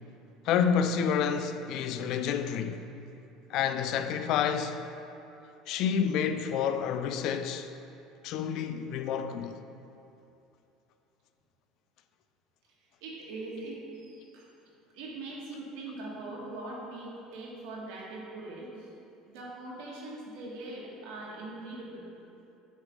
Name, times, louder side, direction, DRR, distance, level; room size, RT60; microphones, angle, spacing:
voice 1, 0.5-2.9 3.5-4.8 5.7-7.7 8.2-9.6, left 7 dB, 55° left, 0.3 m, -29 dB
voice 2, 13.0-14.5 14.9-18.9 19.2-22.1, right 2 dB, 75° right, 1.5 m, -41 dB
8.1 x 3.2 x 5.0 m
cardioid pair, 145°, 0 cm